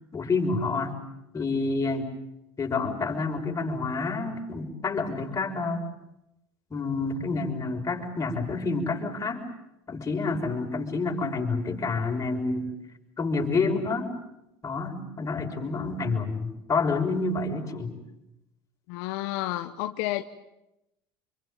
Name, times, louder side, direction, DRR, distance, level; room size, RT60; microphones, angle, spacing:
voice 1, 0.1-0.9 1.3-2.1 2.6-5.9 6.7-9.4 9.9-12.7 13.2-14.1 14.6-17.9, left 3 dB, 25° left, 1 dB, 6.1 m, -28 dB
voice 2, 18.9-20.2, left 16 dB, 70° left, 9 dB, 1.1 m, -30 dB
26.5 x 23.5 x 9.2 m, 0.88 s
hypercardioid pair, 90°, 12 cm